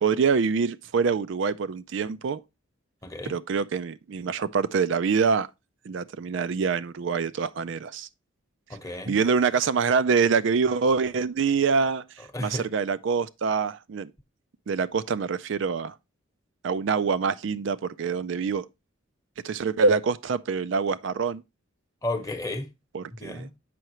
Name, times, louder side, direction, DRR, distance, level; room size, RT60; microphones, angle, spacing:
voice 1, 0.0-2.4 3.2-5.5 5.9-8.1 9.1-14.1 14.7-15.9 16.6-18.7 19.4-21.4 22.9-23.5, right 5 dB, 65° right, 0.4 m, -25 dB
voice 2, 3.0-3.3 8.7-9.2 12.3-12.7 22.0-22.7 23.2-23.5, left 2 dB, 15° left, 0.9 m, -32 dB
7.7 x 5.7 x 3.0 m
head